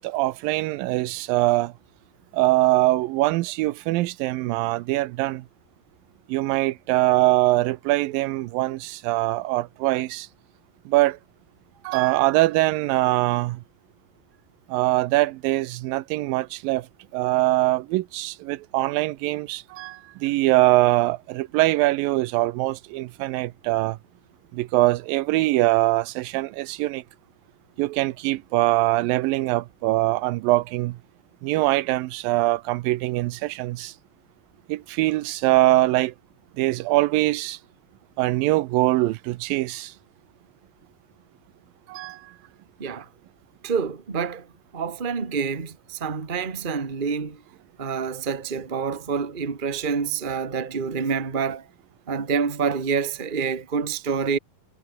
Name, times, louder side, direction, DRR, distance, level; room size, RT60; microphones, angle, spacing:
voice 1, 0.0-1.7 2.3-5.5 6.3-10.3 10.9-11.2 11.8-13.6 14.7-16.9 17.1-24.0 24.5-27.0 27.8-31.0 31.4-33.9 34.7-36.1 36.6-37.6 38.2-39.9 41.9-42.4, right 18 dB, 85° right, 2.5 m, -23 dB
voice 2, 43.6-44.5 44.7-47.4 47.8-51.7 52.1-54.4, right 6 dB, 25° right, 1.1 m, -27 dB
omnidirectional pair, 4.0 m